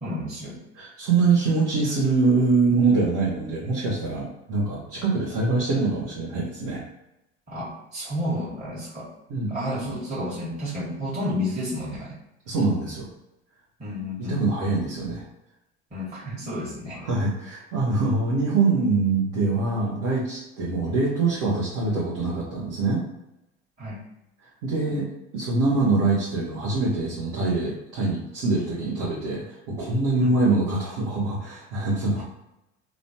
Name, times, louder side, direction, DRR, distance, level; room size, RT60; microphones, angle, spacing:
voice 1, 0.0-0.6 7.5-9.1 9.5-12.2 13.8-14.4 15.9-17.0 23.8-24.0 30.2-30.4, left 1 dB, 20° right, -9 dB, 1.3 m, -31 dB
voice 2, 0.7-6.8 9.3-9.6 12.5-13.1 14.2-15.2 17.0-23.0 24.6-25.1 25.3-32.2, right 3 dB, 60° right, -6 dB, 1.1 m, -24 dB
3.1 x 2.0 x 2.8 m, 0.89 s
hypercardioid pair, 75°, 35 cm